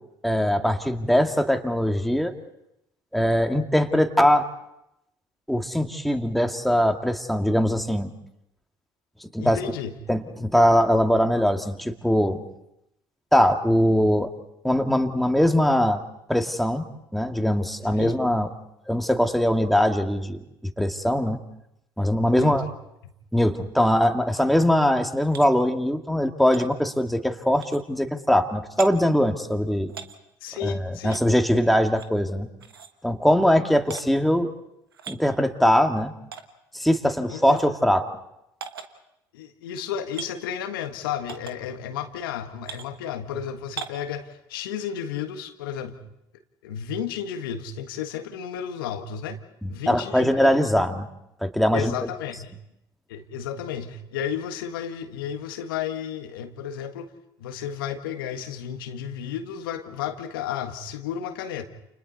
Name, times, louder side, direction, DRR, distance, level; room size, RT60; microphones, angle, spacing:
voice 1, 0.2-2.3 3.1-4.5 5.5-8.1 9.2-9.6 10.1-12.4 13.3-14.3 14.6-16.0 16.3-16.8 17.1-18.5 18.9-20.4 20.8-21.4 22.0-22.7 23.3-29.9 30.6-32.5 33.0-34.5 35.1-36.1 36.7-38.0 49.6-51.1 51.4-51.9, equal, ahead, 5 dB, 2.2 m, -21 dB
voice 2, 9.4-9.9 18.0-18.2 22.3-22.7 30.4-31.2 37.3-37.6 39.3-46.0 46.6-49.4 49.7-50.6 51.7-52.5 53.1-57.1 57.4-61.6, left 8 dB, 75° left, 8 dB, 1.6 m, -32 dB
sound 1, 25.3-25.5 26.5-26.7 27.5-27.8 28.8-28.9 29.9-30.2 31.1-31.2 31.9-32.2 32.6-32.9 33.9-34.0 34.9-35.2 36.3-36.4 37.4-37.7 38.6-38.9 40.1-40.3 41.3-41.6 42.6-42.9 43.8-44.0, right 7 dB, 85° right, 1.3 m, -38 dB
29.5 x 29.0 x 4.2 m, 0.83 s
hypercardioid pair, 60°, 12 cm